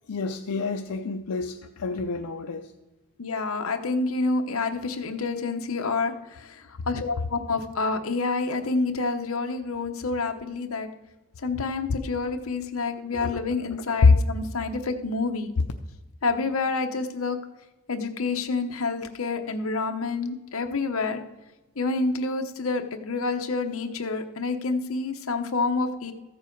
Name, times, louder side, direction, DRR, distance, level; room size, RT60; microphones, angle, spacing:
voice 1, 0.1-2.7 13.1-13.4 13.9-14.2, left 4 dB, 90° left, 5 dB, 0.5 m, -24 dB
voice 2, 3.2-6.1 6.9-10.9 11.4-15.5 16.2-17.4 17.9-21.2 21.8-26.1, left 3 dB, 70° left, 5 dB, 0.9 m, -28 dB
14.0 x 7.5 x 4.6 m, 1.1 s
head